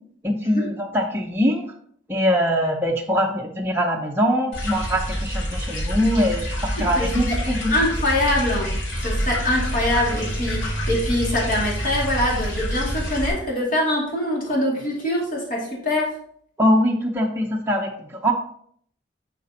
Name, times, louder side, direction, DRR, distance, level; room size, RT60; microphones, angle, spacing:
voice 1, 0.2-1.7 2.1-7.7 16.6-18.3, equal, 10° right, 0 dB, 0.7 m, -22 dB
sound 1, 4.5-13.3, equal, 75° left, 2.4 m, -27 dB
voice 2, 7.0-7.4 7.7-8.7 9.0-16.1, left 1 dB, 45° left, -3 dB, 2.3 m, -23 dB
11.0 x 4.3 x 2.8 m, 0.63 s
head